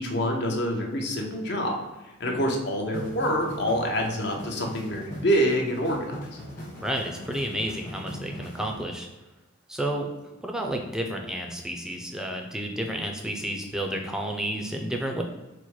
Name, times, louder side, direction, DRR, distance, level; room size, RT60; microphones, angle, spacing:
voice 1, 0.0-1.8 2.2-6.4, equal, 55° left, 1 dB, 0.7 m, -26 dB
sound 1, 2.9-8.8, equal, 35° left, 1.2 m, -40 dB
voice 2, 6.8-9.1 9.7-10.1 10.4-15.2, right 1 dB, 5° right, 2 dB, 0.4 m, -31 dB
4.2 x 2.1 x 4.6 m, 1.1 s
head